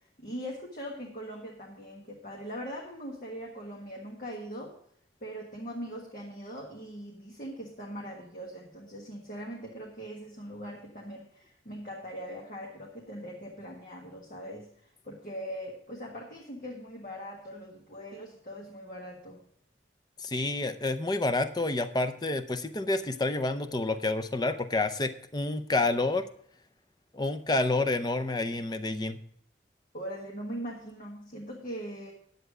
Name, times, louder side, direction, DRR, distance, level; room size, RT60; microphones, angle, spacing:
voice 1, 0.2-4.7 5.2-14.7 15.0-19.4 29.9-32.1, equal, 50° left, -2 dB, 1.6 m, -41 dB
voice 2, 20.2-26.3 27.1-29.2, left 2 dB, 25° left, 10 dB, 0.6 m, -29 dB
10.5 x 8.0 x 4.9 m, 0.65 s
head